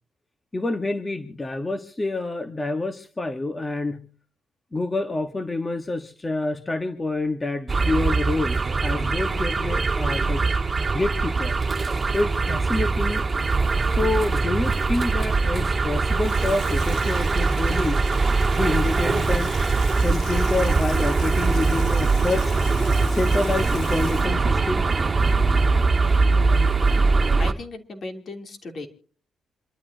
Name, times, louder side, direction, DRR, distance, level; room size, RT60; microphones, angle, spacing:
voice 1, 0.5-4.1 4.7-10.5 10.9-11.6 12.1-13.2 13.9-18.0 18.6-19.5 20.0-22.5 23.1-24.8, left 2 dB, 20° left, 7 dB, 1.5 m, -27 dB
sound 1, 7.7-27.5, right 4 dB, 30° right, 2.3 m, -22 dB
Water tap faucet / Sink (filling or washing), 15.8-25.5 25.8-25.9, left 6 dB, 75° left, 2.9 m, -43 dB
voice 2, 26.9-28.9, left 2 dB, 50° left, 5 dB, 3.2 m, -37 dB
27.5 x 12.5 x 2.8 m, 0.43 s
cardioid pair, 75°, 0 cm